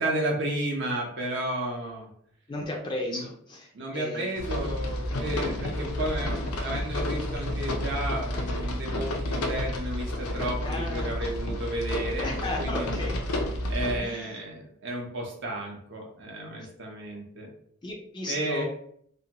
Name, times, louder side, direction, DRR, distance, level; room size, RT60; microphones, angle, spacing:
voice 1, 0.0-2.1 3.1-3.2 3.7-13.4 13.7-17.5 18.3-18.6, right 1 dB, 55° right, 0 dB, 0.5 m, -33 dB
voice 2, 2.5-4.3 10.6-11.1 12.2-13.2 14.0-14.3 17.8-18.6, left 2 dB, 20° left, -1 dB, 0.3 m, -34 dB
sound 1, 4.4-14.0, left 1 dB, 90° left, 0.5 m, -30 dB
2.6 x 2.2 x 2.7 m, 0.65 s
head